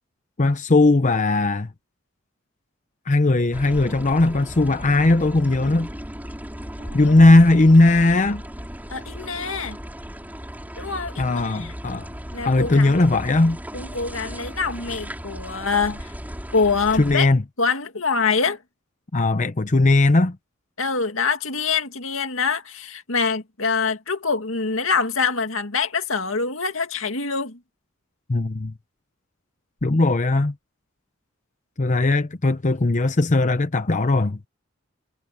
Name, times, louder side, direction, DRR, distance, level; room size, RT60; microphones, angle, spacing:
voice 1, 0.4-1.7 3.1-5.9 6.9-8.4 11.2-12.1 12.4-13.6 17.0-17.4 19.1-20.4 28.3-28.7 29.8-30.5 31.8-34.4, left 2 dB, 35° left, 0.8 m, -18 dB
sound 1, 3.5-17.2, equal, 10° right, 5.7 m, -36 dB
voice 2, 6.8-7.2 8.9-9.8 10.7-11.7 12.3-12.9 13.7-16.1 16.5-17.3 17.6-18.6 20.8-27.6, left 5 dB, 80° left, 2.2 m, -25 dB
head